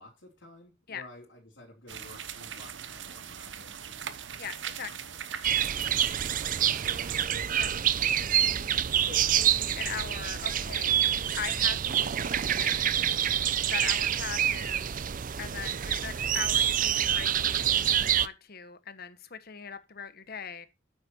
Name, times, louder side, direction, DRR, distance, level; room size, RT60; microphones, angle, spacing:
voice 1, 0.0-4.1 6.6-7.0, left 1 dB, 70° left, 3.9 m, -52 dB
sound 1, 1.9-7.3, right 8 dB, 65° right, 0.9 m, -41 dB
voice 2, 4.4-5.1 7.5-8.7 9.0-11.0 11.4-13.1 13.7-14.9 15.4-20.7, left 7 dB, 50° left, 1.2 m, -41 dB
sound 2, 5.4-18.3, right 10 dB, 45° right, 0.5 m, -27 dB
9.4 x 8.3 x 4.4 m
head